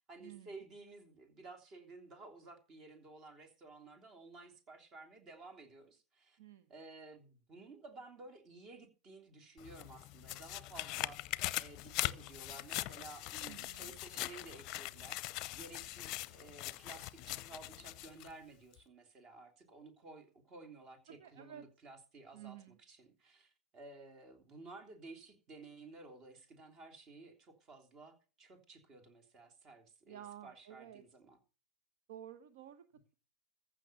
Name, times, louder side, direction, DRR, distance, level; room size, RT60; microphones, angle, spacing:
voice 1, 0.0-6.4 6.7-31.4, right 3 dB, 35° right, 3.2 m, -54 dB
sound 1, 9.6-18.3 18.7-18.8, left 17 dB, 40° left, 0.7 m, -41 dB
voice 2, 13.5-13.9 21.2-21.7 22.3-22.8 30.1-31.0 32.1-32.8, right 11 dB, 60° right, 1.1 m, -52 dB
15.0 x 6.4 x 6.7 m
hypercardioid pair, 100°, 0 cm